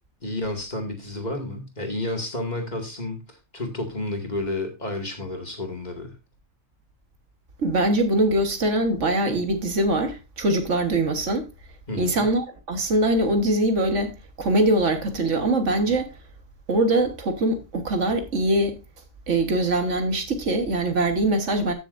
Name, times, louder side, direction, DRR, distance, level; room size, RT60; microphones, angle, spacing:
voice 1, 0.2-6.1 11.9-12.2, left 2 dB, 35° left, 2.3 m, -31 dB
voice 2, 7.6-11.5 12.0-14.1 14.4-16.1 16.7-18.8 19.3-21.7, right 1 dB, 70° right, 1.8 m, -22 dB
14.5 x 6.8 x 2.6 m
omnidirectional pair, 1.3 m